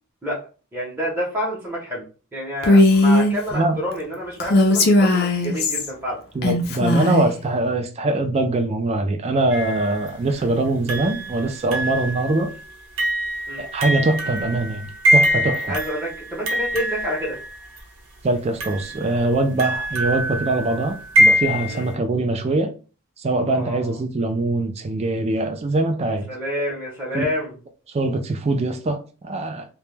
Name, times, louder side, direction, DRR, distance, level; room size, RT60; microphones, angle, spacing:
voice 1, 0.7-2.0 2.3-6.2 13.5-13.6 15.7-17.4 21.7-21.8 23.5-24.0 26.3-27.6, equal, 10° right, 0.7 m, -28 dB
Female speech woman speaking, 2.6-3.3 4.4-5.9 6.4-7.3, left 2 dB, 45° left, 0.4 m, -17 dB
voice 2, 6.3-12.5 13.6-15.8 18.2-22.7 23.2-26.3 27.1-27.2 27.9-29.7, right 2 dB, 30° right, 0.3 m, -23 dB
sound 1, 9.5-10.1 10.9-17.8 18.6-21.9, equal, 65° right, 0.7 m, -24 dB
2.1 x 2.1 x 3.1 m
head